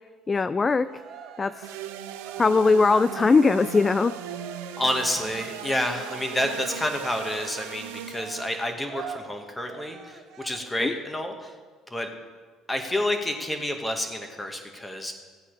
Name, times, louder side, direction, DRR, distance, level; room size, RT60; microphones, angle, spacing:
voice 1, 0.3-0.9 1.4-1.7 2.4-4.2 10.8-10.9, left 4 dB, 30° left, 15 dB, 0.3 m, -20 dB
Cheering, 0.8-10.9, right 7 dB, 55° right, 0.9 m, -43 dB
sound 1, 1.6-8.7, right 9 dB, 80° right, 0.6 m, -38 dB
voice 2, 4.8-11.5 11.9-12.1 12.7-15.1, left 1 dB, 15° left, 4 dB, 2.0 m, -29 dB
15.0 x 8.4 x 5.0 m, 1.4 s
hypercardioid pair, 60°, 0 cm